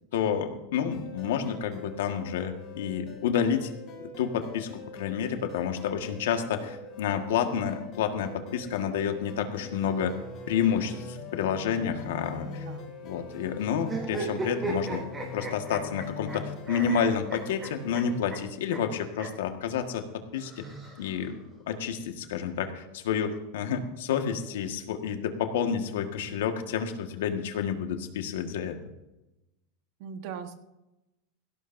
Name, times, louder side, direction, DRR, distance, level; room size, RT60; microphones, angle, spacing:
voice 1, 0.1-3.7 4.0-4.7 5.0-10.1 10.5-12.5 13.0-15.0 15.3-20.0 20.3-20.6 21.0-21.4 21.7-28.8, left 7 dB, 90° left, 6 dB, 1.6 m, -29 dB
sound 1, 0.9-18.2, left 3 dB, 40° left, 4.3 m, -43 dB
voice 2, 12.4-13.0 30.0-30.6, right 7 dB, 55° right, 7 dB, 1.4 m, -40 dB
sound 2, 13.8-16.4 16.7-18.0 18.3-18.4 18.7-18.8 19.1-19.3 20.3-21.3, right 3 dB, 15° right, 4.6 m, -36 dB
17.5 x 16.5 x 2.7 m, 0.96 s
supercardioid pair, 150°, 0 cm